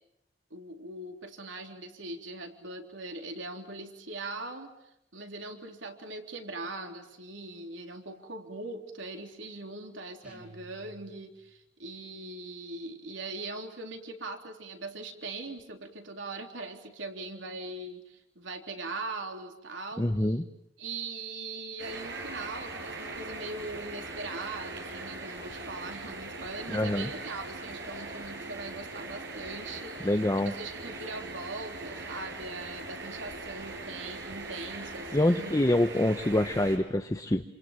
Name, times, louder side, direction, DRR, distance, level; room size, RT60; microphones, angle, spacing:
voice 1, 0.5-4.7 5.1-20.4 20.8-35.6, right 2 dB, 90° right, 4 dB, 3.7 m, -41 dB
sound 1, 10.2-11.6, right 2 dB, 5° right, 6.1 m, -53 dB
voice 2, 20.0-20.4 26.7-27.1 30.0-30.5 35.1-37.4, left 1 dB, 20° left, 7 dB, 1.0 m, -26 dB
sound 2, 21.8-36.8, right 2 dB, 70° right, 6.6 m, -41 dB
28.5 x 27.5 x 7.5 m, 0.84 s
head